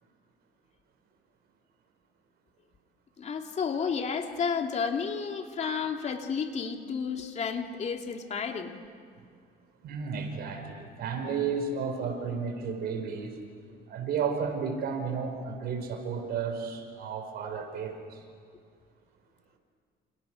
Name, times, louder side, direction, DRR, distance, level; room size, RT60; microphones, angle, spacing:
voice 1, 3.2-8.7, left 6 dB, 40° left, 4 dB, 2.8 m, -31 dB
voice 2, 9.8-13.4 13.9-18.2, right 6 dB, 70° right, 5 dB, 5.4 m, -33 dB
29.0 x 29.0 x 6.5 m, 2.2 s
cardioid pair, 110°, 17 cm